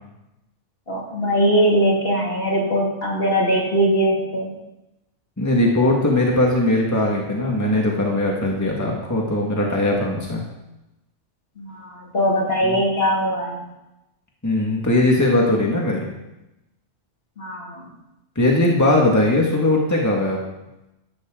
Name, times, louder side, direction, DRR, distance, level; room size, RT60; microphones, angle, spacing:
voice 1, 0.9-4.5 11.6-13.7 17.4-17.8, equal, 50° left, -3 dB, 2.9 m, -21 dB
voice 2, 5.4-10.4 12.6-12.8 14.4-16.1 18.4-20.4, left 1 dB, 15° left, -1 dB, 1.9 m, -19 dB
12.5 x 12.0 x 3.9 m, 0.94 s
omnidirectional pair, 1.3 m